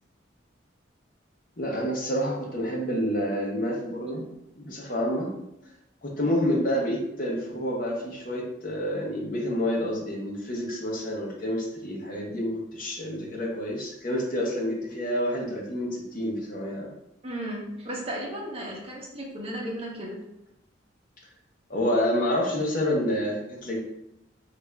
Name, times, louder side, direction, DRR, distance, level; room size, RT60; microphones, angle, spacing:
voice 1, 1.6-4.3 4.6-5.3 6.0-16.9 21.7-23.8, equal, 45° left, -2 dB, 0.8 m, -28 dB
voice 2, 17.2-20.2, right 1 dB, 30° right, -2 dB, 0.8 m, -35 dB
3.3 x 2.4 x 3.3 m, 0.84 s
head